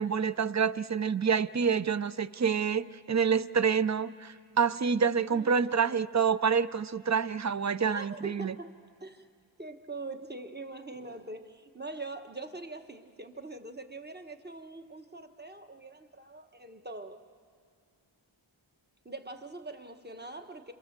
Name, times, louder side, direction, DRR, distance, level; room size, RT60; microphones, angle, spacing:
voice 1, 0.0-8.5, right 6 dB, 35° right, 16 dB, 0.5 m, -27 dB
voice 2, 5.3-6.2 7.9-8.7 9.0-9.3 9.6-17.2 19.0-20.7, right 2 dB, 20° right, 6 dB, 1.3 m, -43 dB
27.0 x 26.5 x 7.3 m, 2.3 s
wide cardioid pair, 65°, 47 cm